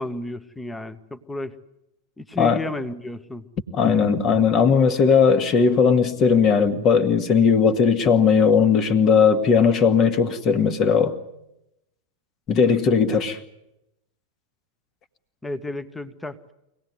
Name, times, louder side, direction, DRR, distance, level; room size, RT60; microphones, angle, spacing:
voice 1, 0.0-1.5 2.2-3.5 15.4-16.4, left 2 dB, 10° left, 1.2 m, -32 dB
voice 2, 3.7-11.2 12.5-13.4, left 6 dB, 35° left, 1.7 m, -18 dB
24.5 x 18.5 x 9.5 m
figure-of-eight pair, 90°, 0 cm